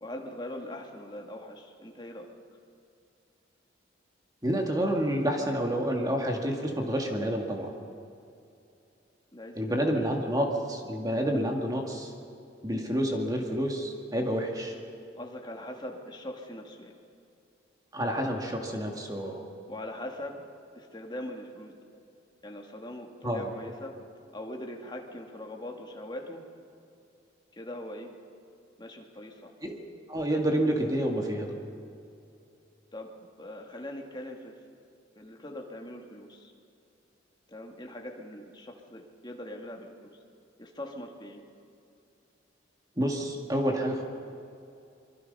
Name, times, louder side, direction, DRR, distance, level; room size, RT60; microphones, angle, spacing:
voice 1, 0.0-2.3 9.3-9.9 12.8-12.9 15.2-16.9 19.7-20.4 20.8-21.7 22.4-24.0 24.3-26.4 27.5-28.1 28.8-29.5 32.9-34.5 35.2-36.5 37.5-40.1 40.6-41.4, left 1 dB, 25° left, 1 dB, 2.0 m, -41 dB
voice 2, 4.4-7.7 9.6-12.1 12.6-14.8 17.9-19.4 23.2-23.5 29.6-29.8 30.1-31.6 43.0-44.0, equal, 20° right, 2 dB, 2.2 m, -29 dB
25.0 x 23.0 x 5.5 m, 2.6 s
head